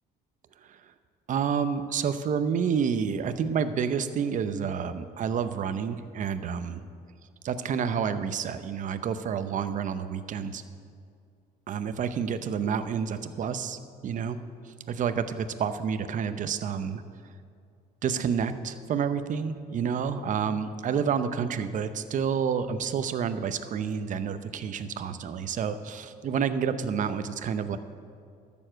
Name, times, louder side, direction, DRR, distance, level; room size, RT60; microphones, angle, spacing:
voice 1, 1.3-6.8 7.4-10.6 11.7-14.4 14.9-17.0 18.0-27.8, right 7 dB, 50° right, 11 dB, 0.8 m, -29 dB
12.5 x 7.1 x 7.6 m, 2.3 s
cardioid pair, 110°, 17 cm